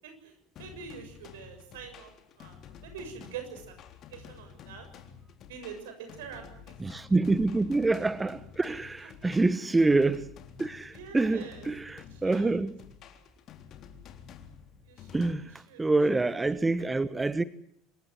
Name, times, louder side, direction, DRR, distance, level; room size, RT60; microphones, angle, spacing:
voice 1, 0.0-2.1 2.4-3.7 4.1-4.9 5.5-6.8 9.2-9.3 10.9-11.7 12.1-12.6 14.8-15.3 15.7-15.8 16.2-16.3 16.8-16.9, right 7 dB, 70° right, 6.7 m, -45 dB
sound 1, 0.6-15.3, left 8 dB, 45° left, 3.7 m, -50 dB
voice 2, 6.8-10.3 10.6-12.7 15.1-17.4, right 3 dB, 15° right, 1.2 m, -26 dB
26.5 x 22.0 x 7.7 m
figure-of-eight pair, 70°, 0 cm